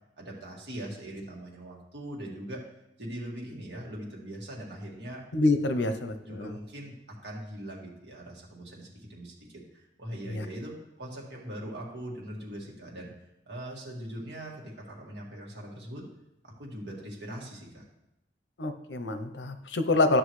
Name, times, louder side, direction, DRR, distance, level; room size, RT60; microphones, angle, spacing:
voice 1, 0.2-2.6 3.0-5.2 5.7-5.8 6.2-13.1 13.5-16.1 16.4-17.8, right 1 dB, 70° right, -2 dB, 2.0 m, -41 dB
voice 2, 5.3-6.5 10.3-10.5 18.6-20.2, left 2 dB, 90° left, 8 dB, 0.7 m, -26 dB
11.5 x 6.1 x 3.2 m, 0.87 s
head